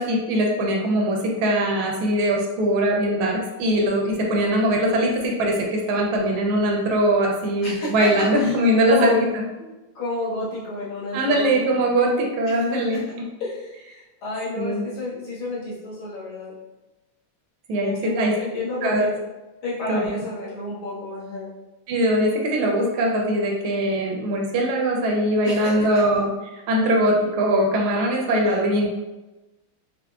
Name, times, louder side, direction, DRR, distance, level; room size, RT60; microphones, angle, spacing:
voice 1, 0.0-9.4 11.1-13.0 14.6-14.8 17.7-18.3 18.8-19.1 19.9-20.1 21.9-28.9, right 1 dB, 80° right, 0 dB, 1.4 m, -21 dB
voice 2, 7.6-8.6 8.9-9.3 10.0-11.7 12.4-12.6 12.9-13.0 13.4-16.5 17.8-19.2 19.6-21.5 25.4-26.0 28.5-28.6, left 3 dB, 70° left, -7 dB, 1.9 m, -30 dB
4.4 x 2.1 x 2.3 m, 1.1 s
omnidirectional pair, 2.4 m